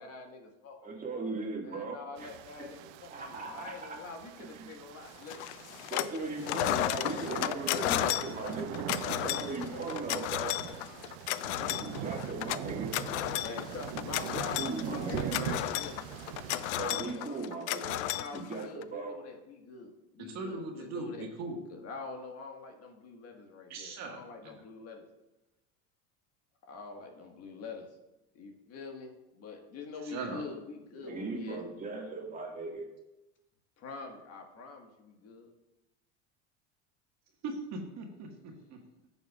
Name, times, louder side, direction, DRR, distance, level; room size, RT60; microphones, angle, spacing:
voice 1, 0.0-1.0 1.6-5.5 6.0-7.2 7.6-9.9 13.4-14.6 14.9-16.1 16.7-17.2 17.8-21.3 21.7-25.1 26.6-27.9 28.3-31.6 33.8-35.5, left 4 dB, 45° left, 3 dB, 1.6 m, -45 dB
voice 2, 0.8-2.7 3.1-4.0 4.4-4.6 5.9-8.8 9.2-10.6 11.6-13.0 14.5-15.3 16.7-17.9 18.3-19.2 31.0-32.9, right 3 dB, 25° right, 0 dB, 1.9 m, -38 dB
sound 1, 2.2-16.9, right 10 dB, 75° right, 0.7 m, -42 dB
sound 2, 5.3-6.2 6.4-18.8, left 15 dB, 80° left, 0.5 m, -33 dB
voice 3, 20.2-21.6 23.7-24.5 30.1-30.4 37.4-38.8, right 3 dB, 50° right, 2 dB, 1.6 m, -39 dB
14.0 x 7.1 x 2.4 m, 0.96 s
supercardioid pair, 100°, 34 cm